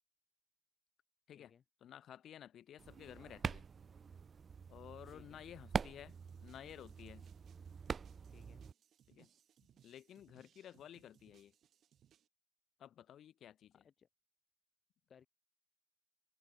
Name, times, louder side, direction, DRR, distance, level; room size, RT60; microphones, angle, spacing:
voice 1, 1.8-3.6 4.7-7.3 9.1-9.3 9.8-11.5 12.8-13.8, left 10 dB, 70° left, 1.9 m, -54 dB
sound 1, 2.8-8.7, right 6 dB, 45° right, 0.5 m, -44 dB
voice 2, 5.1-5.4 8.3-8.6 13.7-14.1 15.1-15.3, left 7 dB, 55° left, 3.9 m, -64 dB
sound 2, 6.1-12.3, right 10 dB, 65° right, 5.5 m, -70 dB
open air
cardioid pair, 90°, 0 cm